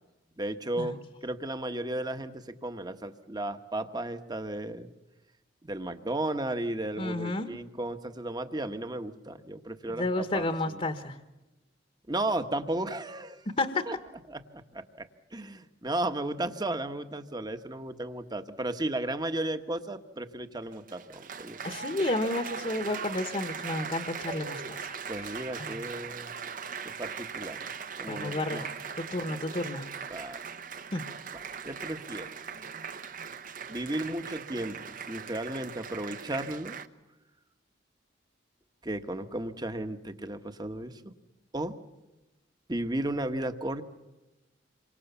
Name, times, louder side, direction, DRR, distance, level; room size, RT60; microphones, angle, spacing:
voice 1, 0.4-4.9 5.6-10.8 12.1-13.4 13.9-14.0 14.3-21.6 25.1-26.3 27.0-27.7 28.0-28.7 30.1-30.4 31.6-32.3 33.7-36.8 38.8-41.1 41.5-41.8 42.7-43.8, right 1 dB, 20° right, 9 dB, 1.3 m, -34 dB
voice 2, 7.0-7.5 9.9-11.2 13.6-13.9 21.6-25.3 25.6-25.8 28.1-29.9 30.9-31.0, left 2 dB, 35° left, 7 dB, 1.3 m, -31 dB
Applause, 20.6-36.9, right 6 dB, 45° right, 1.0 m, -40 dB
28.0 x 24.0 x 7.1 m, 1.1 s
head